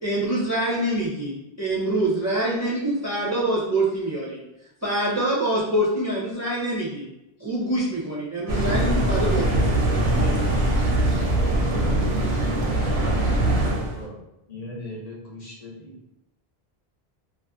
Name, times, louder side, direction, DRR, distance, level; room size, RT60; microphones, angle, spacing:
voice 1, 0.0-4.4 4.8-7.1 7.4-10.4, right 1 dB, 25° right, -7 dB, 0.4 m, -25 dB
sound 1, 8.5-14.0, right 1 dB, 90° right, 0.9 m, -22 dB
voice 2, 10.1-12.3, left 5 dB, 75° left, -2 dB, 0.8 m, -46 dB
voice 3, 14.5-16.0, left 1 dB, 45° left, -3 dB, 0.7 m, -38 dB
2.5 x 2.3 x 2.4 m, 0.85 s
omnidirectional pair, 1.1 m